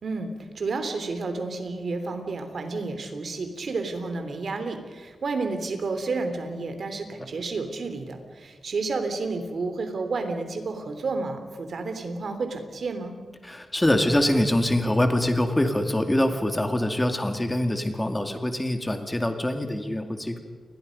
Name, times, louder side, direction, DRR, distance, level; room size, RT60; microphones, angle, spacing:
voice 1, 0.0-13.1, right 3 dB, 55° right, 7 dB, 3.3 m, -31 dB
voice 2, 13.4-20.4, left 1 dB, 10° left, 6 dB, 2.2 m, -24 dB
29.5 x 22.0 x 5.4 m, 1.5 s
wide cardioid pair, 130°, 0 cm